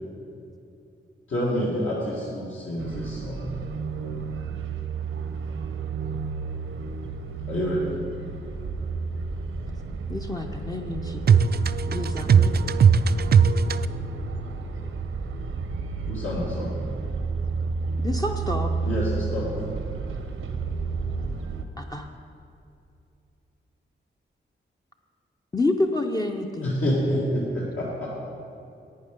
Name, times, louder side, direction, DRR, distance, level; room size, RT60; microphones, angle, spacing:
voice 1, 1.3-3.6 7.5-7.9 16.1-16.8 18.8-19.5 26.6-28.2, equal, 75° left, 2.0 m, -28 dB
sound 1, 2.8-21.6, right 4 dB, 80° right, 0.8 m, -31 dB
voice 2, 10.1-11.5 11.9-12.7 18.0-18.7 21.8-22.1 25.5-26.8, left 2 dB, 20° left, 0.5 m, -28 dB
voice 3, 11.3-13.9, right 6 dB, 50° right, 0.4 m, -19 dB
11.0 x 8.8 x 5.2 m
wide cardioid pair, 110°, 21 cm